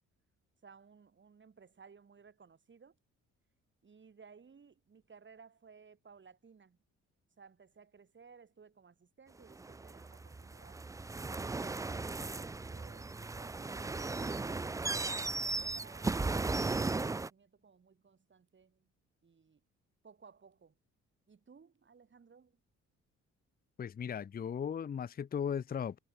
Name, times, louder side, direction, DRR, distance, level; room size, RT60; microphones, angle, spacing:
voice 1, 0.6-3.0 3.8-6.8 7.4-10.8 12.4-13.9 14.4-18.9 19.2-19.6 20.0-20.8 21.3-22.6, right 5 dB, 40° right, 8.0 m, -60 dB
sound 1, 9.5-17.3, right 3 dB, 10° right, 0.4 m, -36 dB
voice 2, 23.8-26.0, left 7 dB, 30° left, 0.6 m, -37 dB
cardioid pair, 90°, 30 cm